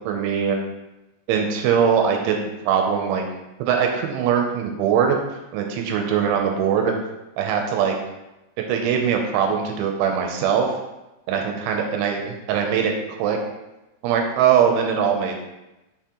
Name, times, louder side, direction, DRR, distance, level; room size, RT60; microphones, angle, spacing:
voice 1, 0.1-0.6 1.3-3.3 3.6-5.2 5.5-6.9 7.4-8.0 8.7-10.8 11.3-13.4 14.0-15.4, right 7 dB, 80° right, 3 dB, 3.0 m, -21 dB
6.4 x 5.8 x 2.9 m, 0.99 s
omnidirectional pair, 5.6 m